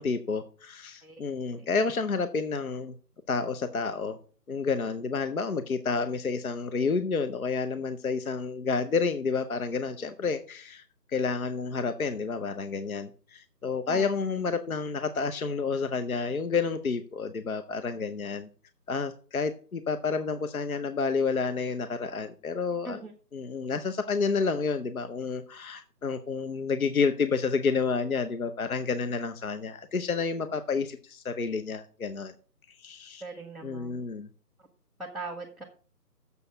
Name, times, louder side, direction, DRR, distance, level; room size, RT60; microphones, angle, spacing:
voice 1, 0.0-2.9 3.3-4.2 4.5-10.8 11.1-18.5 18.9-23.0 23.3-32.3 32.7-33.2 33.6-34.3, left 5 dB, 60° left, 10 dB, 0.8 m, -30 dB
voice 2, 33.2-34.1 35.0-35.6, right 2 dB, ahead, -3 dB, 0.6 m, -40 dB
7.0 x 6.3 x 6.8 m, 0.40 s
figure-of-eight pair, 170°, 48 cm